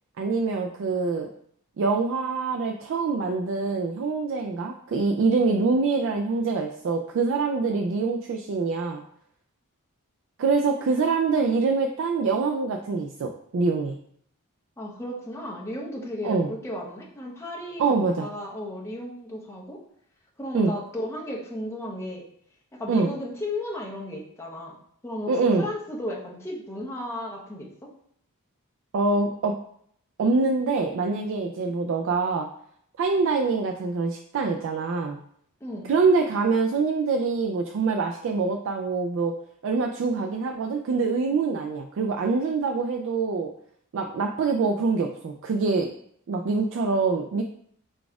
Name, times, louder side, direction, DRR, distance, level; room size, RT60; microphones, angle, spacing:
voice 1, 0.2-1.3 1.8-9.0 10.4-13.9 16.2-16.5 17.8-18.3 20.5-20.7 22.9-23.1 25.3-25.7 28.9-29.6 30.2-32.5 33.0-35.2 35.9-39.3 39.6-43.5 43.9-45.9 46.3-47.4, right 4 dB, 60° right, 3 dB, 0.3 m, -25 dB
voice 2, 14.8-17.8 18.2-19.8 20.4-22.2 22.7-24.7 25.0-27.9 35.6-35.9, left 1 dB, 10° left, -3 dB, 0.8 m, -34 dB
4.0 x 2.4 x 4.6 m, 0.67 s
head